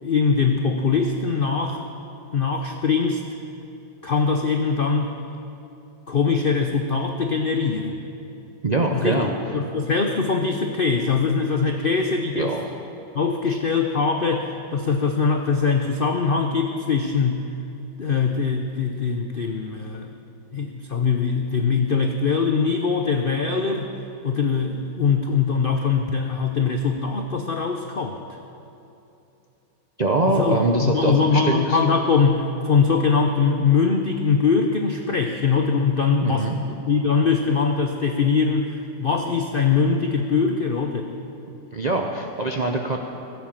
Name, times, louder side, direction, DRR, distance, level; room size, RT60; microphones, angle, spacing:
voice 1, 0.0-1.9 2.3-3.2 4.0-5.1 6.1-8.0 8.9-9.2 9.5-12.5 13.1-17.4 18.0-20.1 20.5-23.9 24.2-28.2 30.3-41.1, left 5 dB, 80° left, 4 dB, 0.5 m, -22 dB
voice 2, 8.6-9.3 12.3-12.7 13.5-13.6 30.0-31.8 36.2-36.6 41.5-43.0, right 2 dB, 60° right, 1 dB, 0.4 m, -23 dB
16.5 x 8.2 x 7.5 m, 2.9 s
omnidirectional pair, 2.0 m